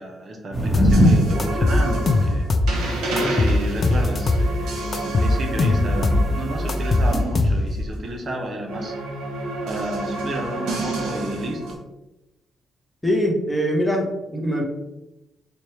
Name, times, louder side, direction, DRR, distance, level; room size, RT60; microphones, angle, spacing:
voice 1, 0.0-2.5 3.1-8.9 9.7-11.8, right 1 dB, 45° right, 2 dB, 0.6 m, -31 dB
sound 1, 0.5-2.2 2.7-7.2, equal, 15° right, 1.2 m, -24 dB
sound 2, 0.7-1.0 1.4-2.8 3.2-4.5 4.9-6.3 6.7-7.9, left 2 dB, 40° left, 0.4 m, -20 dB
sound 3, 0.9-8.1 8.7-11.7, right 2 dB, 85° right, 0.8 m, -30 dB
voice 2, 13.0-14.6, equal, 5° left, 0 dB, 0.8 m, -22 dB
4.3 x 2.3 x 3.1 m, 0.96 s
cardioid pair, 90°, 0 cm